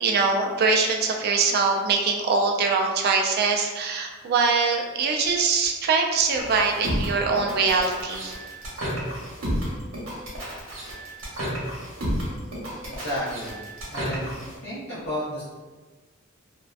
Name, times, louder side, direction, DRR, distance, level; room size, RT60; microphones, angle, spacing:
voice 1, 0.0-8.3, right 4 dB, 50° right, 2 dB, 0.3 m, -23 dB
sound 1, 6.3-14.5, equal, 85° right, 0.9 m, -31 dB
voice 2, 12.8-13.6 13.9-15.4, equal, 60° left, -12 dB, 0.7 m, -32 dB
2.5 x 2.1 x 2.3 m, 1.3 s
head